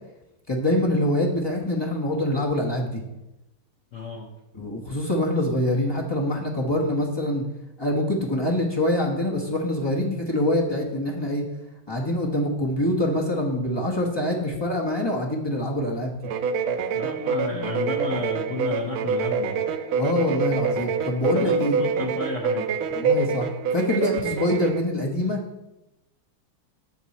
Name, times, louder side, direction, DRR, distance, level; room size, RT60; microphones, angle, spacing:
voice 1, 0.5-3.0 4.5-7.4 7.8-11.4 11.9-16.1 20.0-21.8 22.9-25.4, left 1 dB, 30° left, -1 dB, 0.4 m, -25 dB
voice 2, 3.9-4.3 16.9-19.6 21.2-22.7, left 3 dB, 70° left, 1 dB, 0.7 m, -32 dB
sound 1, 16.2-24.8, right 5 dB, 75° right, 1.4 m, -26 dB
7.1 x 6.9 x 4.1 m, 0.93 s
omnidirectional pair, 2.4 m